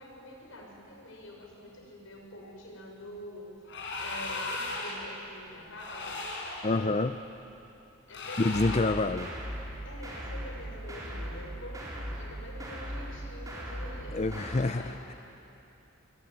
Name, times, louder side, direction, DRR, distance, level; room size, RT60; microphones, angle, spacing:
voice 1, 0.0-3.5 4.0-6.2 8.1-9.3 9.8-15.2, left 1 dB, 80° left, 0 dB, 6.4 m, -46 dB
sound 1, 3.6-5.1 5.7-6.8 8.1-9.0, left 2 dB, 60° left, 5.3 m, -37 dB
voice 2, 6.6-7.2 8.4-9.3 14.1-15.1, left 2 dB, 35° left, 9 dB, 0.6 m, -27 dB
sound 2, 8.5-14.6, equal, 20° right, 5.1 m, -39 dB
25.0 x 23.0 x 9.5 m, 2.8 s
head